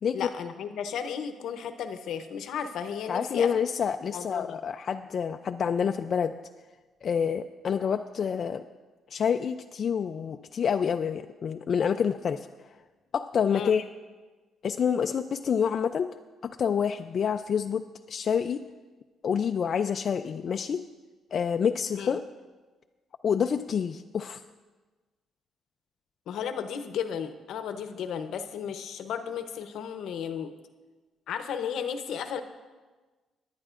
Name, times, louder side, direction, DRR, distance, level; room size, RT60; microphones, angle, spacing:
voice 1, 0.1-3.7 4.1-4.6 13.5-13.8 22.0-22.1 26.3-30.5 31.3-32.4, left 7 dB, 75° left, 9 dB, 0.8 m, -34 dB
voice 2, 3.1-6.4 7.0-8.6 9.1-12.7 13.1-13.8 14.6-16.1 16.4-18.6 19.2-20.8 21.3-22.2 23.2-24.4, left 7 dB, 55° left, 6 dB, 0.3 m, -28 dB
19.0 x 10.5 x 2.5 m, 1.3 s
cardioid pair, 90°, 0 cm